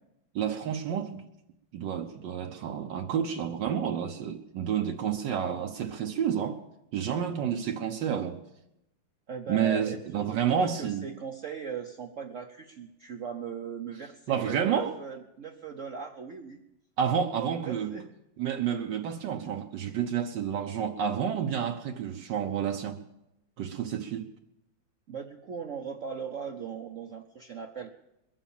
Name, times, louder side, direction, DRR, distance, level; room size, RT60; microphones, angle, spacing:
voice 1, 0.3-1.2 1.7-6.6 6.9-8.4 9.5-11.1 14.3-14.9 17.0-17.9 18.4-23.0 23.6-24.3, right 8 dB, 75° right, 1.4 m, -30 dB
voice 2, 9.3-16.6 17.4-18.1 25.1-27.9, right 6 dB, 55° right, 0.9 m, -39 dB
22.0 x 7.4 x 7.1 m
omnidirectional pair, 2.0 m